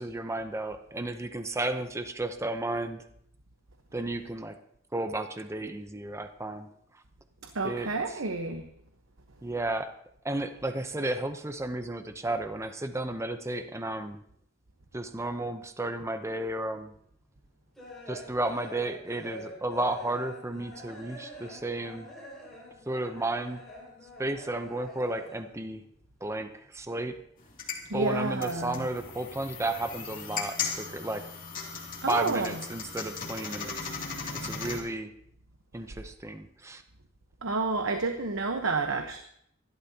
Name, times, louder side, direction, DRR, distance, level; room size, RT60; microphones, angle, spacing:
voice 1, 0.0-3.1 3.9-4.6 4.9-6.7 6.9-7.0 7.6-8.2 9.4-9.9 10.2-14.2 14.9-16.9 18.1-22.1 22.9-23.6 24.2-25.8 26.2-27.2 27.9-31.2 32.1-33.9 34.3-35.1 35.7-36.8, right 2 dB, 15° right, 8 dB, 0.6 m, -33 dB
voice 2, 7.5-8.6 27.9-28.8 32.0-32.5 37.4-39.2, right 3 dB, 85° right, 5 dB, 1.0 m, -29 dB
sound 1, 16.9-25.7 25.9-27.1 27.4-28.8 29.1-29.7, equal, ahead, 5.6 m, -46 dB
sound 2, 27.4-34.8, left 5 dB, 45° left, 2.7 m, -37 dB
26.0 x 12.0 x 2.8 m, 0.71 s
head